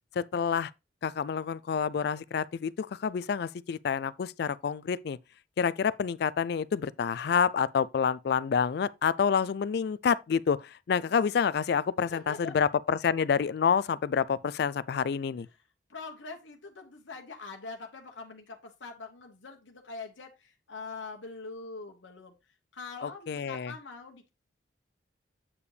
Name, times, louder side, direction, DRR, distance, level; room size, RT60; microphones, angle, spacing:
voice 1, 0.2-0.7 1.0-5.2 5.6-15.5 23.0-23.7, left 6 dB, 55° left, 0.3 m, -28 dB
voice 2, 12.1-12.6 15.5-15.6 15.9-24.3, left 4 dB, 75° left, 1.1 m, -43 dB
8.5 x 4.9 x 3.3 m
head